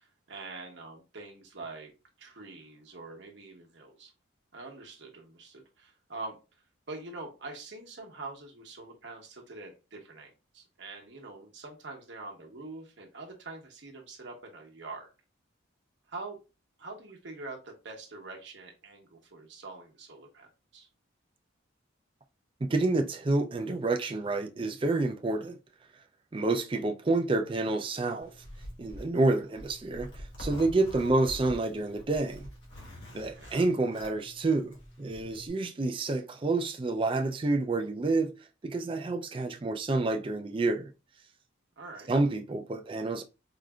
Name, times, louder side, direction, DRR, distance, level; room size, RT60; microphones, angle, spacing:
voice 1, 0.0-1.9 2.2-4.1 4.5-6.4 6.9-15.1 16.1-16.4 16.8-20.9 33.1-33.6 41.8-42.1, right 3 dB, 60° right, 1.0 m, -44 dB
voice 2, 22.6-25.6 26.3-28.3 28.8-32.5 33.1-38.3 38.6-40.9 42.1-43.2, right 2 dB, 25° right, 0.4 m, -28 dB
Zipper (clothing), 28.2-35.5, equal, 60° left, 1.5 m, -46 dB
4.9 x 2.6 x 2.3 m
head